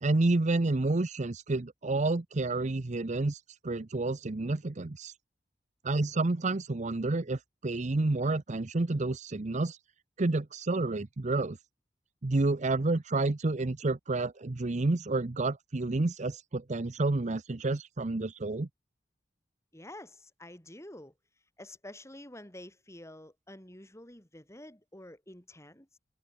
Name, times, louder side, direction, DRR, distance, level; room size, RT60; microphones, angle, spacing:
voice 1, 0.0-5.1 5.8-9.8 10.2-11.6 12.2-18.7, right 2 dB, 40° right, 0.7 m, -29 dB
voice 2, 19.7-21.1 21.6-26.0, left 1 dB, 15° left, 6.6 m, -49 dB
head